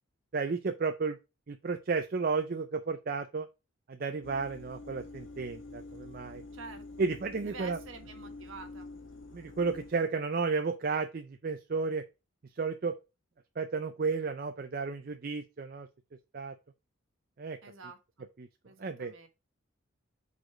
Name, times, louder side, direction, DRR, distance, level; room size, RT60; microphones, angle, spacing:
voice 1, 0.3-1.2 1.5-3.5 3.9-6.4 7.0-7.8 9.3-12.0 12.6-12.9 13.6-15.9 16.3-16.6 17.4-17.6 18.4-18.5 18.8-19.1, right 4 dB, 45° right, 7 dB, 0.4 m, -32 dB
sound 1, 4.2-9.9, left 2 dB, 65° left, 1.2 m, -47 dB
voice 2, 6.5-7.0 7.4-8.9 17.6-18.3 18.6-19.3, right 4 dB, 70° right, 5 dB, 1.4 m, -48 dB
5.0 x 4.1 x 5.7 m, 0.27 s
head